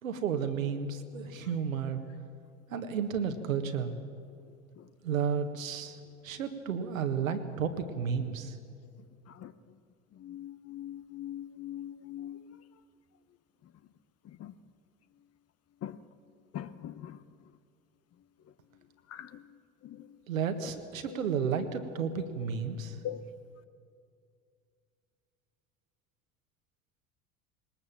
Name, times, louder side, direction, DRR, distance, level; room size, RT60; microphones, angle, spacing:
voice 1, 0.0-2.0 2.7-3.9 5.0-6.0 6.2-8.5 20.3-23.0, right 7 dB, 80° right, 7 dB, 1.6 m, -32 dB
voice 2, 10.2-12.6 14.4-14.5 15.8-16.0 16.5-17.2 19.1-19.4 19.8-20.0 21.1-21.2 23.0-23.2, left 11 dB, 40° left, 14 dB, 0.9 m, -41 dB
20.5 x 19.5 x 7.4 m, 2.4 s
hypercardioid pair, 70°, 40 cm